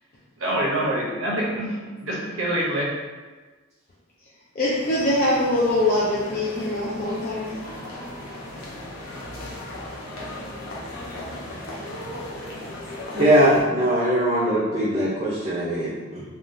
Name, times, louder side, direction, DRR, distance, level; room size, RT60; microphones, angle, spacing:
voice 1, 0.4-2.9, right 1 dB, 70° right, -4 dB, 0.8 m, -26 dB
voice 2, 4.6-7.5, left 1 dB, 45° left, -7 dB, 0.4 m, -23 dB
sound 1, 4.7-13.6, left 1 dB, 85° left, 0.7 m, -36 dB
voice 3, 13.1-16.2, equal, 30° right, -9 dB, 0.5 m, -21 dB
3.5 x 2.3 x 2.5 m, 1.3 s
head